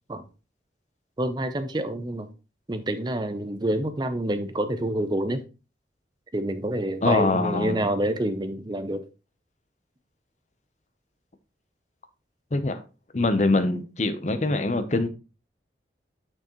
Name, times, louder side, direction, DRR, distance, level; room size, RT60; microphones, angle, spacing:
voice 1, 1.2-2.3 2.7-5.4 6.3-9.0, right 1 dB, 25° right, 0.6 m, -27 dB
voice 2, 7.0-7.9 12.5-12.8 13.1-15.1, left 2 dB, 40° left, 0.7 m, -23 dB
6.4 x 6.2 x 3.0 m
head